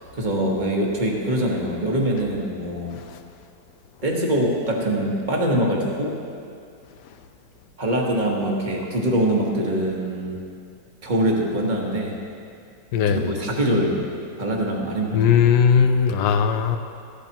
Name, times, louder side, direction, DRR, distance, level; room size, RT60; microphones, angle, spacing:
voice 1, 0.1-3.0 4.0-6.2 7.8-10.4 11.0-12.1 13.0-14.1 14.4-15.3 15.6-15.7, right 1 dB, 30° right, -2 dB, 1.3 m, -23 dB
voice 2, 12.9-13.3 15.1-16.8, left 7 dB, 70° left, 8 dB, 1.2 m, -18 dB
14.0 x 11.5 x 3.0 m, 2.4 s
omnidirectional pair, 2.0 m